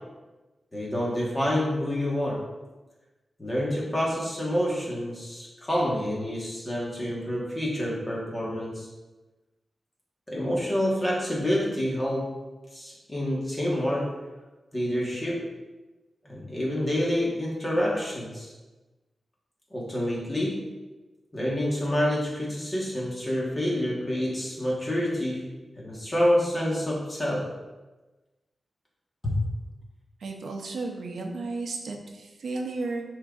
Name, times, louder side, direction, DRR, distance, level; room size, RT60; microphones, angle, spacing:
voice 1, 0.7-2.4 3.4-8.9 10.3-12.3 12.7-14.1 14.7-15.5 16.2-18.5 19.7-20.6 21.3-25.4 25.8-27.5 29.2-29.3, equal, 20° left, -4 dB, 1.5 m, -27 dB
voice 2, 30.2-33.0, right 3 dB, 80° right, 2 dB, 0.8 m, -33 dB
9.9 x 3.9 x 2.5 m, 1.2 s
wide cardioid pair, 165°, 0 cm